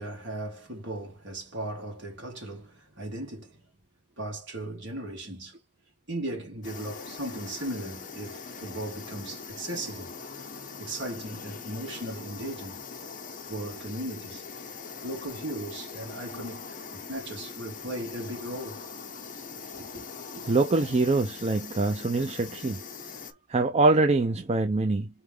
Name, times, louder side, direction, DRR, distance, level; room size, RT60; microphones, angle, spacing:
voice 1, 0.0-3.6 4.2-5.6 6.1-10.1 10.8-12.8 13.5-14.4 15.0-16.6 16.9-18.8 19.7-20.1, right 1 dB, 55° right, 2.8 m, -37 dB
sound 1, 6.6-23.3, left 5 dB, 35° left, 1.1 m, -42 dB
voice 2, 20.5-22.8 23.5-25.1, right 3 dB, 30° right, 0.5 m, -24 dB
4.4 x 3.5 x 3.4 m
head